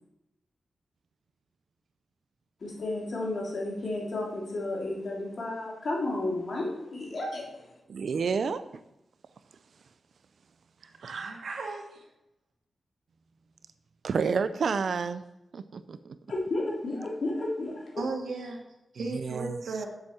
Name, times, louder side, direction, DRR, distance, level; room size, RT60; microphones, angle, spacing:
voice 1, 2.6-7.4 16.3-18.0, left 2 dB, 50° left, -3 dB, 3.3 m, -32 dB
voice 2, 7.9-8.6 14.0-15.2 15.5-16.2 19.2-19.6, right 5 dB, 60° right, 12 dB, 0.5 m, -29 dB
voice 3, 10.8-12.0 18.0-18.6 18.9-19.9, right 3 dB, 75° right, 2 dB, 2.1 m, -35 dB
7.5 x 7.4 x 7.5 m, 0.89 s
wide cardioid pair, 175°, 0 cm